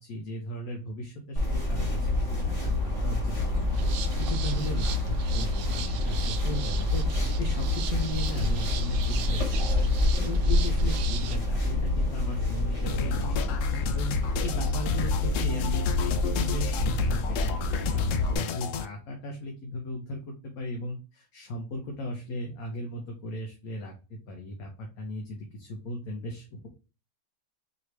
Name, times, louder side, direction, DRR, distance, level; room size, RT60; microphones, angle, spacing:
voice 1, 0.0-3.8 4.2-9.9 10.2-26.7, equal, 60° left, 1 dB, 1.3 m, -37 dB
sound 1, 1.4-18.3, left 2 dB, 20° left, 1.2 m, -27 dB
sound 2, 3.7-11.4, right 9 dB, 70° right, 0.9 m, -40 dB
sound 3, 12.9-18.9, left 7 dB, 75° left, 0.7 m, -32 dB
4.9 x 3.1 x 3.2 m, 0.31 s
omnidirectional pair, 1.9 m